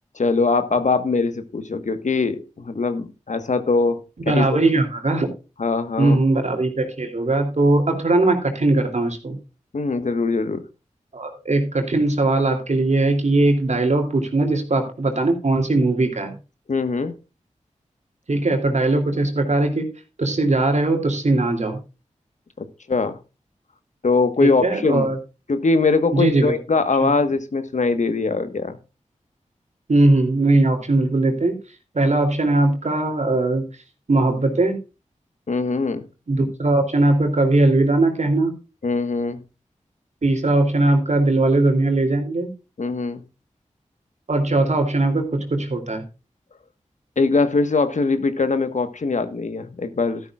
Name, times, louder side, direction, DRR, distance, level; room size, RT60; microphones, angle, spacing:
voice 1, 0.1-4.6 5.6-6.2 9.7-10.6 16.7-17.1 22.6-23.2 24.0-25.1 25.5-28.8 35.5-36.1 38.8-39.4 42.8-43.2 47.2-50.2, left 3 dB, 70° left, 10 dB, 1.3 m, -22 dB
voice 2, 4.3-5.3 6.0-9.4 11.1-16.4 18.3-19.9 20.2-21.8 24.4-25.2 26.1-26.6 27.0-27.1 29.9-31.6 31.9-33.6 34.1-34.8 36.3-38.5 40.2-42.5 44.3-46.0, right 2 dB, 60° right, 4 dB, 3.0 m, -19 dB
13.0 x 12.0 x 2.4 m, 0.30 s
cardioid pair, 45°, 13 cm